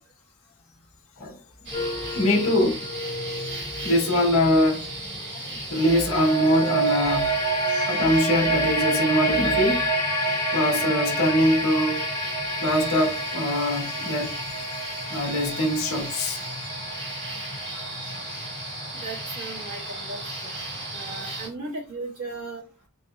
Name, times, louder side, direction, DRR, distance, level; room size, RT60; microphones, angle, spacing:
sound 1, 1.6-21.5, right 1 dB, 55° right, 2.0 m, -35 dB
sound 2, 1.7-5.0 5.8-20.6, right 1 dB, 15° left, 1.0 m, -29 dB
voice 1, 2.1-2.8 3.8-4.9 5.3-7.3 7.9-9.9 10.5-12.0 12.6-14.3 15.1-16.4, left 1 dB, 65° left, 1.1 m, -23 dB
voice 2, 18.9-20.6 20.9-22.6, right 3 dB, 80° right, 1.6 m, -37 dB
4.1 x 3.0 x 2.3 m
head